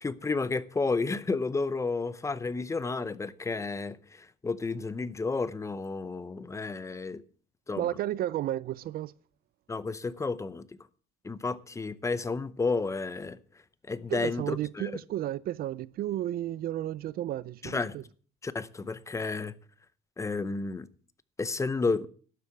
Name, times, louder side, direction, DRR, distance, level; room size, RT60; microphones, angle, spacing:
voice 1, 0.0-7.2 7.7-7.9 9.7-10.7 11.2-13.4 13.9-14.9 17.6-17.9 18.4-19.5 20.2-20.9 21.4-22.1, left 4 dB, 15° left, 0.7 m, -31 dB
voice 2, 7.8-9.1 14.1-18.0, right 13 dB, 55° right, 0.5 m, -33 dB
12.0 x 7.9 x 7.1 m
cardioid pair, 135°, 19 cm